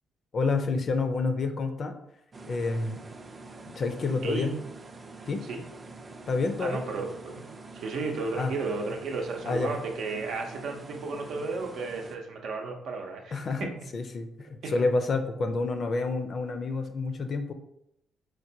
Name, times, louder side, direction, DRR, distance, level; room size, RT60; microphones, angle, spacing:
voice 1, 0.3-1.9 2.5-3.0 3.8-4.5 5.3-5.4 6.3-6.8 8.4-8.5 9.4-9.7 13.3-13.7 13.9-17.5, left 3 dB, 50° left, 7 dB, 0.4 m, -28 dB
sound 1, 2.3-12.2, right 3 dB, 30° right, 0.4 m, -46 dB
voice 2, 4.2-4.6 5.4-5.6 6.6-7.4 7.7-13.7 14.6-14.8, right 3 dB, 75° right, 2 dB, 0.6 m, -33 dB
4.5 x 2.2 x 2.7 m, 0.79 s
cardioid pair, 90°, 0 cm